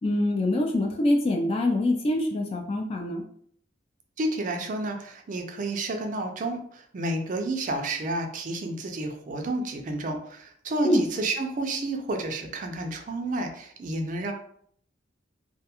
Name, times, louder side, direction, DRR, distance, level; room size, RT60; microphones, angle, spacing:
voice 1, 0.0-3.2 10.8-11.0, left 1 dB, 30° left, 1 dB, 0.3 m, -24 dB
voice 2, 4.2-14.3, right 2 dB, 45° right, 4 dB, 0.4 m, -30 dB
2.3 x 2.2 x 2.8 m, 0.63 s
head